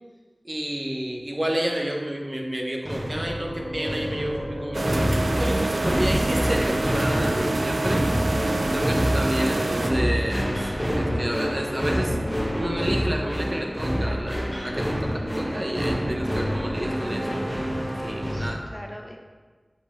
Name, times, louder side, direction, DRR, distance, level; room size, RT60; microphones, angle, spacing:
voice 1, 0.4-8.1 8.4-12.2 12.5-17.5 17.9-18.6, right 1 dB, 40° right, 0 dB, 1.0 m, -30 dB
sound 1, 2.9-18.5, equal, 5° right, 1.6 m, -27 dB
sound 2, 4.7-9.9, right 2 dB, 80° right, 0.3 m, -28 dB
voice 2, 7.0-7.4 14.0-14.3 18.3-19.2, equal, 20° left, 1 dB, 0.9 m, -40 dB
8.1 x 5.3 x 3.6 m, 1.4 s
wide cardioid pair, 55°, 0 cm